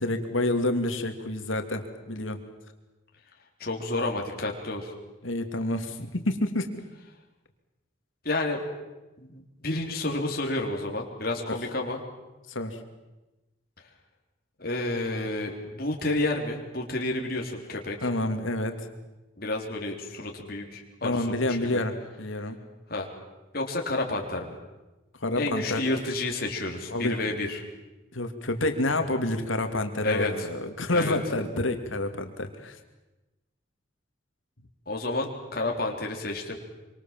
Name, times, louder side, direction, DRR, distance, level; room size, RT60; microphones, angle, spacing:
voice 1, 0.0-2.4 5.2-6.7 12.5-12.8 18.0-18.7 21.0-21.9 22.2-22.6 25.2-25.8 26.9-27.3 28.1-32.8, left 2 dB, 90° left, 7 dB, 2.8 m, -28 dB
voice 2, 3.6-4.9 8.2-8.7 9.2-12.0 14.6-18.0 19.4-21.9 22.9-23.1 23.5-24.6 25.4-27.6 30.0-30.5 30.9-31.2 34.9-36.6, left 2 dB, 50° left, 1 dB, 3.8 m, -30 dB
26.0 x 25.5 x 7.6 m, 1.1 s
head